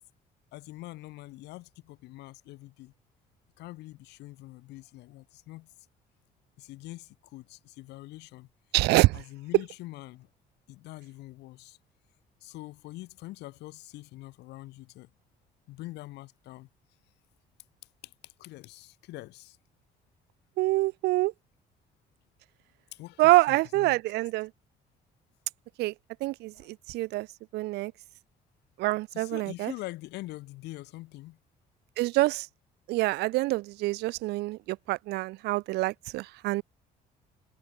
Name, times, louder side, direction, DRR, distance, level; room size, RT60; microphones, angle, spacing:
voice 1, 0.5-2.9 3.6-5.7 6.6-8.5 9.1-10.3 10.7-11.8 12.4-15.1 15.7-16.7 18.0-19.6 22.9-24.0 26.5-26.7 29.1-31.4, left 18 dB, 85° left, 6.7 m, -44 dB
voice 2, 8.7-9.2 20.6-21.3 23.2-24.5 25.8-25.9 26.2-27.3 27.5-27.9 28.8-29.7 32.0-32.5 32.9-36.6, right 20 dB, 80° right, 0.5 m, -26 dB
cardioid pair, 110°, 17 cm